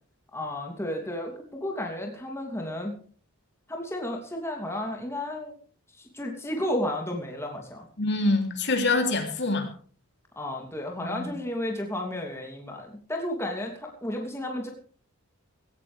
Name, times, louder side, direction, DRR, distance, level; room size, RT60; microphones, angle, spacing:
voice 1, 0.3-2.9 3.7-5.6 6.1-7.9 10.4-14.7, left 1 dB, 10° left, 1 dB, 2.8 m, -32 dB
voice 2, 8.0-9.7 11.0-11.3, left 2 dB, 50° left, 5 dB, 3.2 m, -25 dB
17.5 x 17.0 x 3.4 m, 0.42 s
head